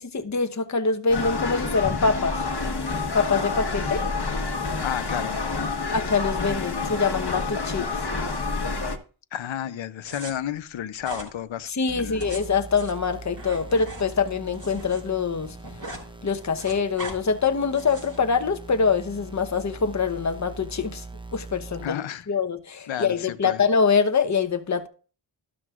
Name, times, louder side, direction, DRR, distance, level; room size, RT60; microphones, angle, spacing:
voice 1, 0.0-2.7 3.1-4.0 4.6-4.7 5.9-8.0 11.7-15.6 16.2-21.0 21.3-22.0 22.3-24.9, left 5 dB, 35° left, 1.0 m, -24 dB
sound 1, 1.1-9.0, left 3 dB, 50° left, 1.4 m, -28 dB
voice 2, 4.8-5.4 9.3-11.7 12.0-12.3 21.8-22.3 22.9-23.6, left 10 dB, 70° left, 0.7 m, -32 dB
sound 2, 10.0-10.3 11.0-11.3 12.0-15.0 15.3-16.0 16.3-17.1 17.7-18.2, right 1 dB, 40° right, 5.5 m, -39 dB
sound 3, 11.9-21.9, right 3 dB, 10° right, 0.8 m, -42 dB
12.5 x 12.0 x 2.5 m
cardioid pair, 45°, 49 cm